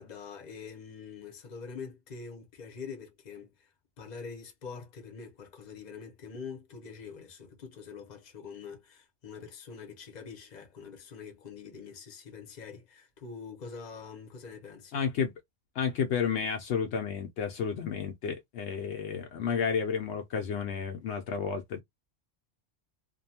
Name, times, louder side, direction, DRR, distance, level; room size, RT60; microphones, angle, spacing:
voice 1, 0.0-15.0, left 5 dB, 40° left, 0.8 m, -45 dB
voice 2, 14.9-15.3 15.7-21.8, left 6 dB, 70° left, 0.8 m, -31 dB
2.6 x 2.2 x 2.7 m
omnidirectional pair, 1.2 m